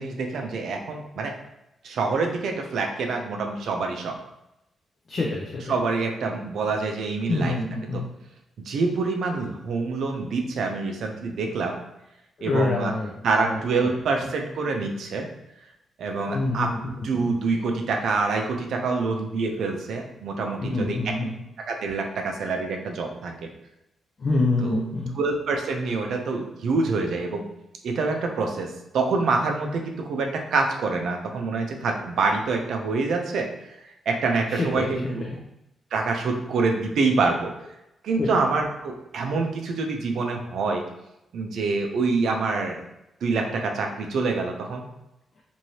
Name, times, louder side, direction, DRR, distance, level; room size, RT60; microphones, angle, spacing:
voice 1, 0.0-1.3 1.8-4.2 5.7-7.6 7.9-8.0 8.6-11.8 12.4-12.9 13.2-15.3 16.0-16.7 17.0-21.1 21.7-23.5 24.6-24.8 25.1-27.4 27.8-33.7 34.1-35.2 35.9-37.5 38.0-40.8 41.3-42.8 43.2-44.8, right 3 dB, 60° right, 3 dB, 0.5 m, -26 dB
voice 2, 5.1-5.7 7.3-8.0 12.4-13.1 13.4-13.9 16.3-16.8 17.1-17.3 20.6-21.4 24.2-25.1 34.5-35.1 38.2-38.3, left 2 dB, 35° left, -2 dB, 0.4 m, -26 dB
3.1 x 2.6 x 2.8 m, 0.86 s
wide cardioid pair, 180°, 0 cm